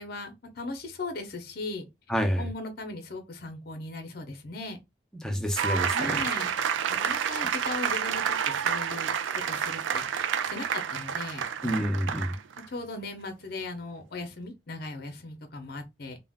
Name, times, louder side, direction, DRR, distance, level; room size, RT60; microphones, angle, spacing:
voice 1, 0.0-1.8 2.4-4.8 5.9-6.5 6.9-11.4 12.7-16.2, left 2 dB, 55° left, 0.6 m, -38 dB
voice 2, 2.1-2.5 5.2-6.2 11.6-12.3, equal, 5° left, 0.5 m, -28 dB
sound 1, 5.6-12.7, right 8 dB, 90° right, 0.3 m, -29 dB
2.4 x 2.1 x 3.5 m
head